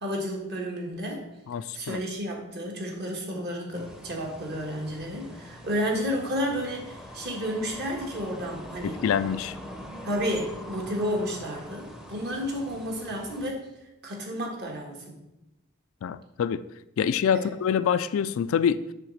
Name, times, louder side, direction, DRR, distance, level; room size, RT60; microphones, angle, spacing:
voice 1, 0.0-1.2 1.7-9.0 10.0-13.6 14.0-15.2 17.3-17.5, equal, 50° right, 0 dB, 1.6 m, -31 dB
voice 2, 1.5-2.0 8.8-9.6 16.0-16.6 17.0-18.8, left 7 dB, 60° left, 14 dB, 0.3 m, -26 dB
sound 1, 3.7-13.5, equal, ahead, 0.7 m, -43 dB
7.6 x 4.0 x 6.4 m, 0.93 s
head